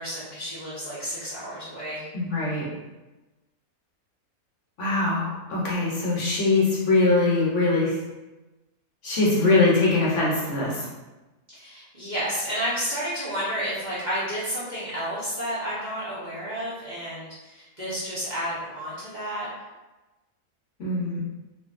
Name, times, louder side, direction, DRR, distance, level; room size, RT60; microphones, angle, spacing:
voice 1, 0.0-2.1 11.5-19.5, equal, 40° right, -11 dB, 0.7 m, -31 dB
voice 2, 2.1-2.8 4.8-8.0 9.0-10.9 20.8-21.2, left 3 dB, 60° left, -6 dB, 0.9 m, -22 dB
2.7 x 2.6 x 2.4 m, 1.1 s
omnidirectional pair, 1.5 m